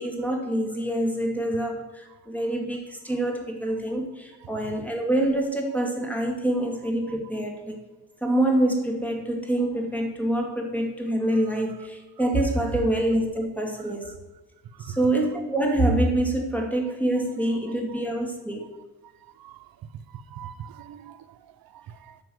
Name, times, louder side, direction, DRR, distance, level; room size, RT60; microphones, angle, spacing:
voice 1, 0.0-7.8 8.2-14.1 14.8-18.6, right 1 dB, 5° left, 2.4 m, -26 dB
voice 2, 19.2-22.2, right 9 dB, 65° right, 0.8 m, -43 dB
9.7 x 5.7 x 7.8 m
cardioid pair, 95°, 39 cm